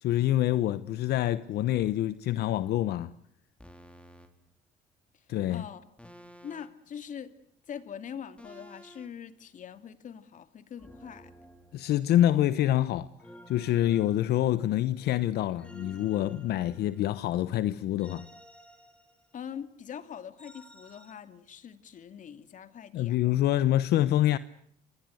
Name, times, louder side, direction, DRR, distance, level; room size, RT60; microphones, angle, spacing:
voice 1, 0.0-3.1 5.3-5.6 11.7-13.1 13.5-18.3 22.9-24.4, left 13 dB, 75° left, 1.1 m, -26 dB
sound 1, 1.7-2.0 3.6-4.3 6.0-6.9 8.4-9.1 10.8-12.2 13.2-14.8 15.6-17.2 18.0-19.5 20.4-21.1, equal, 5° left, 4.5 m, -52 dB
voice 2, 5.5-5.8 6.4-7.3 7.7-11.3 19.3-23.2, left 8 dB, 50° left, 2.6 m, -43 dB
28.0 x 22.0 x 8.0 m
cardioid pair, 110°, 17 cm